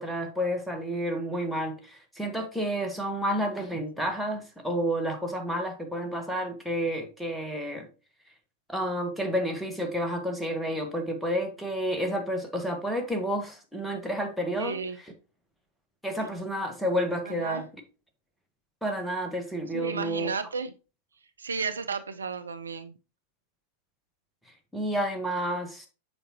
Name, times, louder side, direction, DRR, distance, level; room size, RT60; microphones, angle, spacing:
voice 1, 0.0-7.9 8.7-14.8 16.0-17.6 18.8-20.3 24.7-25.9, equal, ahead, 1.3 m, -30 dB
voice 2, 14.5-15.0 17.2-17.6 19.7-20.7 21.4-22.9, right 5 dB, 75° right, 0.5 m, -33 dB
7.0 x 5.1 x 2.9 m
figure-of-eight pair, 90°, 0 cm